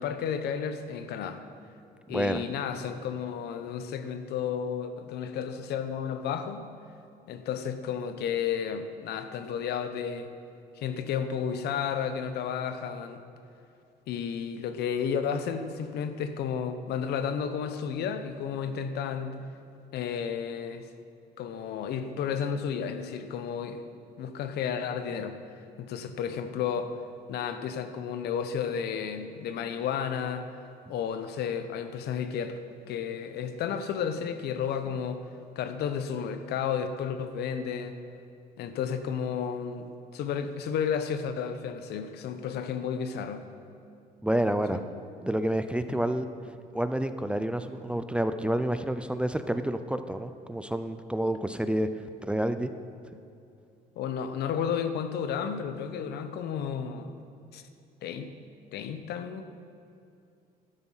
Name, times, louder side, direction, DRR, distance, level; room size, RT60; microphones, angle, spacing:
voice 1, 0.0-1.4 2.1-6.6 7.3-10.3 10.8-13.2 14.1-19.4 19.9-20.9 21.4-23.8 24.2-25.4 25.8-26.9 27.3-30.5 30.9-32.6 32.9-35.2 35.6-38.0 38.6-43.4 44.7-44.8 45.9-46.0 54.0-57.2 57.5-57.6 58.0-58.3 58.7-59.4, left 7 dB, 75° left, 10 dB, 0.9 m, -32 dB
voice 2, 2.1-2.4 44.2-44.8 45.2-46.3 46.7-51.9 52.2-52.7, right 1 dB, 5° right, 10 dB, 0.5 m, -29 dB
12.5 x 9.8 x 5.7 m, 2.6 s
cardioid pair, 110°, 17 cm